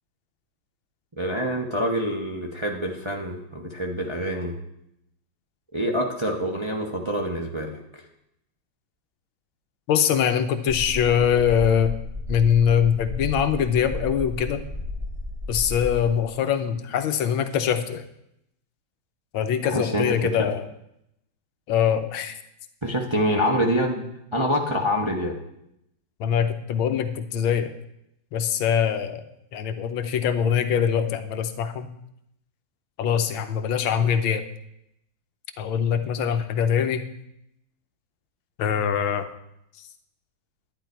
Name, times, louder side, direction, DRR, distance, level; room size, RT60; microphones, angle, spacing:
voice 1, 1.2-4.6 5.7-8.0 19.6-20.1 22.8-24.0 24.3-25.4, equal, 20° right, 0 dB, 0.7 m, -26 dB
voice 2, 9.9-11.9 12.3-14.6 15.5-18.0 19.3-20.6 21.7-22.4 26.2-27.7 28.3-29.2 29.5-31.9 33.0-34.4 35.6-37.0 38.6-39.3, left 8 dB, 80° left, 9 dB, 1.5 m, -23 dB
sound 1, 10.7-16.0, left 1 dB, ahead, 1.7 m, -33 dB
11.0 x 10.0 x 4.5 m, 0.80 s
omnidirectional pair, 2.2 m